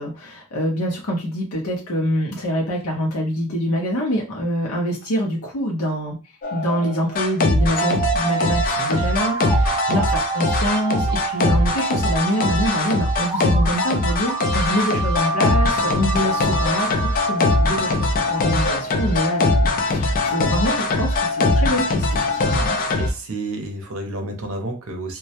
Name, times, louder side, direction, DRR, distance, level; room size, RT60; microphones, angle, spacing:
voice 1, 0.0-6.2 6.5-22.8, equal, 80° left, -3 dB, 0.6 m, -25 dB
sound 1, 6.4-23.1, left 2 dB, 40° left, 0.3 m, -21 dB
sound 2, 7.6-18.5, right 6 dB, 10° right, 0.7 m, -28 dB
voice 2, 22.9-25.2, right 2 dB, 70° right, 4 dB, 0.6 m, -30 dB
2.2 x 2.0 x 2.8 m, 0.31 s
head